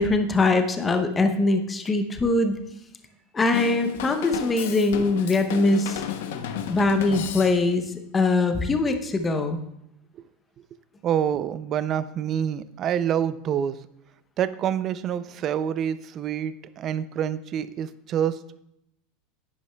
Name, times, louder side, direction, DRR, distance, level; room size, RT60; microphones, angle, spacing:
voice 1, 0.0-2.6 3.3-6.0 6.7-7.8 8.1-9.6, left 3 dB, 15° left, 7 dB, 0.6 m, -22 dB
Drum kit / Drum, 3.5-7.9, left 8 dB, 80° left, 0.7 m, -33 dB
voice 2, 11.0-13.9 14.4-18.6, right 9 dB, 30° right, 15 dB, 0.3 m, -27 dB
10.5 x 9.5 x 2.2 m, 0.80 s
supercardioid pair, 165°, 0 cm